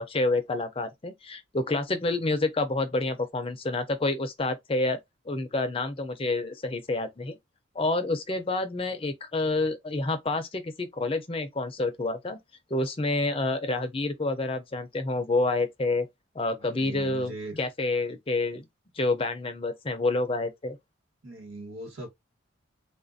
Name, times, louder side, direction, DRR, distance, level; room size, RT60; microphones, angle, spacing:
voice 1, 0.0-5.0 5.3-7.4 7.8-12.4 12.7-16.1 16.4-17.3 17.6-18.6 19.0-20.8, left 2 dB, 25° left, 0.5 m, -28 dB
voice 2, 16.6-17.6 21.2-22.1, right 2 dB, 85° right, 1.4 m, -40 dB
3.6 x 2.4 x 2.5 m
head